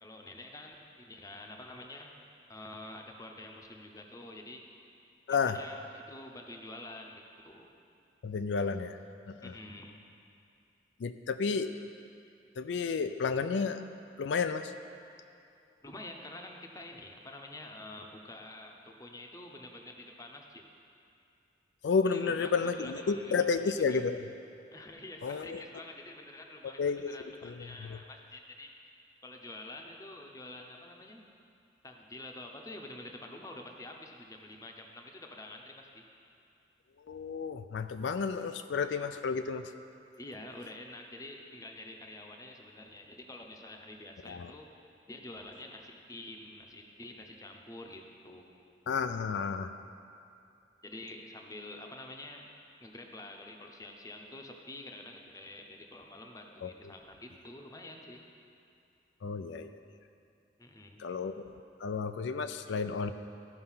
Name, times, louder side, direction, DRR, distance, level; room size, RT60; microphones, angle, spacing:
voice 1, 0.0-2.1 2.5-4.7 5.3-7.7 9.4-10.1 15.8-20.7 22.1-23.5 23.8-24.0 24.7-28.7 29.2-31.2 31.8-36.0 40.1-44.7 45.1-48.5 50.8-52.5 52.8-58.2 60.6-61.1, left 2 dB, 20° left, 2 dB, 0.7 m, -47 dB
voice 2, 8.2-9.0 9.3-9.5 11.0-11.7 12.6-13.8 14.2-14.7 21.8-24.2 25.2-25.6 26.8-27.1 27.4-27.6 27.8-28.0 37.1-39.6 44.3-44.5 48.9-49.7 56.6-56.7 59.2-59.8 61.0-61.4 61.8-63.1, left 5 dB, 85° left, 9 dB, 0.4 m, -31 dB
13.5 x 5.4 x 5.6 m, 2.6 s
head